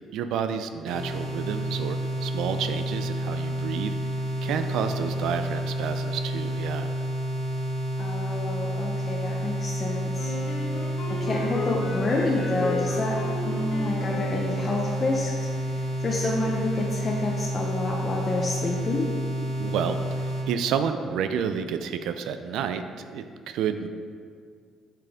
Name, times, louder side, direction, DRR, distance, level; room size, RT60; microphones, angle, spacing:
voice 1, 0.1-3.9 4.4-6.9 19.6-22.8 23.1-23.9, right 7 dB, 80° right, 9 dB, 0.4 m, -30 dB
sound 1, 0.9-20.5, equal, 60° left, 1.3 m, -30 dB
voice 2, 8.0-10.3 11.1-13.2 13.5-19.1, left 2 dB, 30° left, -2 dB, 0.7 m, -29 dB
Wind instrument woodwind instrument, 10.1-15.2, left 2 dB, 80° left, 1.2 m, -34 dB
8.6 x 5.8 x 3.5 m, 2.1 s
cardioid pair, 135°, 0 cm